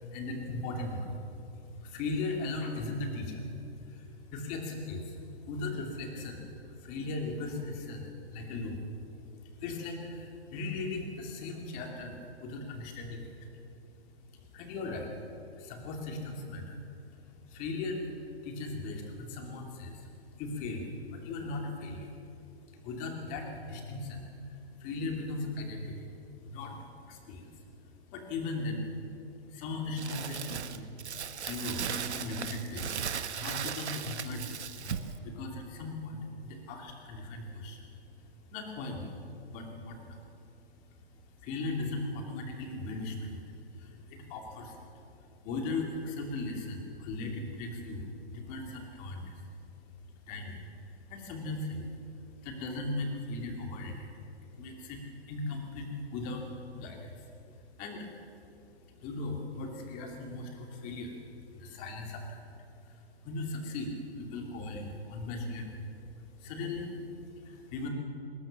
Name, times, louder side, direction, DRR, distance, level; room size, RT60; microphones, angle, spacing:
voice 1, 0.0-14.0 14.3-22.3 22.7-28.9 29.3-58.4 58.6-67.9, left 2 dB, 25° left, 2 dB, 2.7 m, -39 dB
Crumpling crinkling, 30.0-35.2, right 8 dB, 85° right, 1.3 m, -37 dB
20.5 x 17.0 x 7.4 m, 2.7 s
hypercardioid pair, 160°, 33 cm